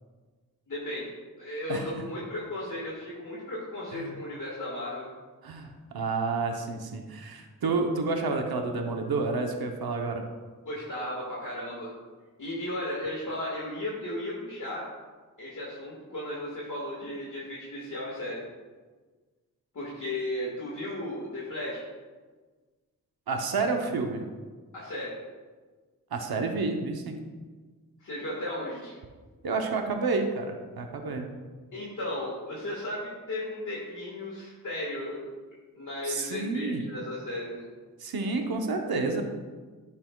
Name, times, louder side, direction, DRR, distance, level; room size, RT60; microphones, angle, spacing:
voice 1, 0.7-1.1 1.4-5.1 10.6-11.9 12.4-14.8 15.4-18.4 19.7-21.8 24.7-25.1 28.0-29.0 31.7-35.2 35.7-37.6, left 1 dB, 55° left, -6 dB, 1.7 m, -35 dB
voice 2, 5.4-10.2 23.3-24.2 26.1-27.2 29.4-31.3 36.0-36.8 38.0-39.2, right 3 dB, 85° right, 3 dB, 0.8 m, -29 dB
10.5 x 5.9 x 2.2 m, 1.4 s
cardioid pair, 50°, 36 cm